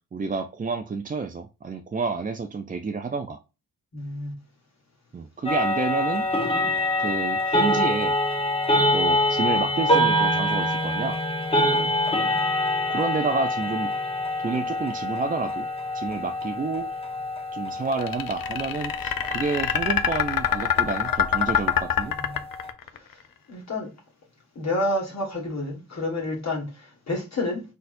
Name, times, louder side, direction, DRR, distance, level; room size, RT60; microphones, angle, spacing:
voice 1, 0.1-3.4 5.1-6.3 7.0-8.2 8.9-11.2 12.9-13.9 14.4-15.7 15.9-17.0 17.5-22.1, right 4 dB, 25° right, 0.4 m, -29 dB
voice 2, 3.9-4.3 11.6-11.9 22.1-22.4 23.5-23.9 24.5-27.6, left 1 dB, 50° left, 1.6 m, -29 dB
sound 1, 5.5-22.7, left 1 dB, 15° left, 1.0 m, -26 dB
sound 2, 17.9-23.0, left 9 dB, 75° left, 0.6 m, -24 dB
4.2 x 3.9 x 2.5 m
wide cardioid pair, 110°, 35 cm